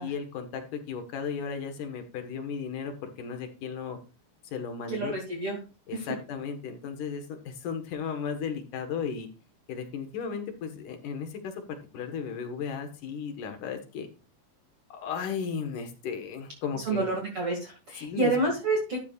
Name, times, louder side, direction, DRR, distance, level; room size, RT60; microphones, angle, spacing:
voice 1, 0.0-4.0 4.5-5.1 5.9-9.3 9.7-14.1 14.9-17.1 18.0-18.3, left 6 dB, 60° left, 6 dB, 2.6 m, -35 dB
voice 2, 4.9-5.6 5.9-6.1 16.8-19.0, right 2 dB, 40° right, -1 dB, 2.7 m, -28 dB
12.5 x 8.6 x 2.5 m, 0.32 s
omnidirectional pair, 4.7 m